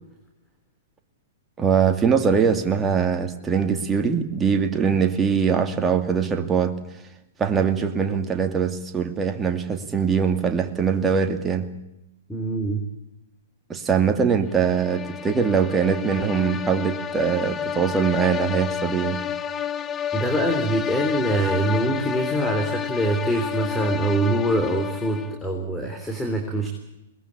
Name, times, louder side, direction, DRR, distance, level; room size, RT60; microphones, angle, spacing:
voice 1, 1.6-6.8 7.4-11.7 13.7-19.2, right 6 dB, 15° right, 6 dB, 2.4 m, -22 dB
voice 2, 12.3-12.8 20.1-26.7, right 1 dB, 5° left, 3 dB, 3.8 m, -24 dB
sound 1, 14.5-25.5, left 8 dB, 25° left, 1.1 m, -30 dB
22.5 x 20.5 x 8.6 m, 0.91 s
hypercardioid pair, 120°, 0 cm